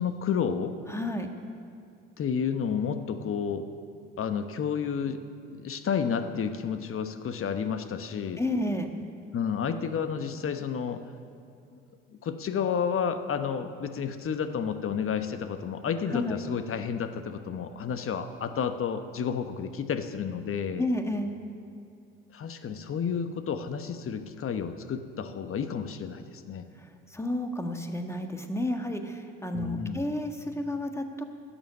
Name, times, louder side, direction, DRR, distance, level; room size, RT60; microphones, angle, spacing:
voice 1, 0.0-0.7 2.2-3.7 4.2-5.2 5.5-8.4 9.3-11.0 12.2-20.9 22.3-26.6 29.5-30.1, left 7 dB, 45° left, 9 dB, 1.1 m, -31 dB
voice 2, 0.9-1.3 8.4-8.9 16.1-16.4 20.8-21.4 26.8-31.2, left 1 dB, 10° left, 5 dB, 1.6 m, -31 dB
12.5 x 7.2 x 9.3 m, 2.4 s
hypercardioid pair, 55°, 29 cm